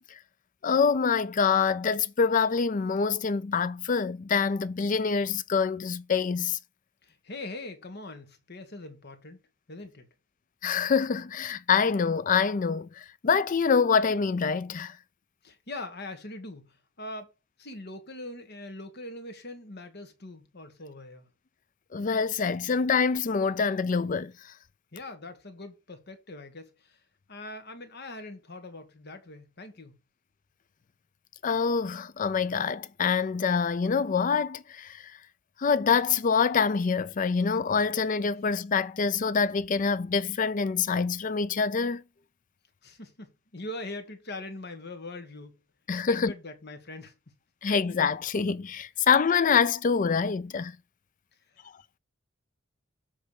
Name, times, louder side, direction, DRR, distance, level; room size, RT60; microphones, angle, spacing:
voice 1, 0.6-6.6 10.6-15.0 21.9-24.3 31.4-35.1 35.6-42.0 45.9-46.3 47.6-50.8, left 5 dB, 40° left, 0.4 m, -25 dB
voice 2, 7.0-9.4 9.7-10.1 15.4-17.3 17.6-21.3 24.9-27.0 27.3-29.9 42.8-45.6 46.1-47.1, left 2 dB, 55° left, 1.6 m, -42 dB
7.5 x 3.5 x 6.4 m
head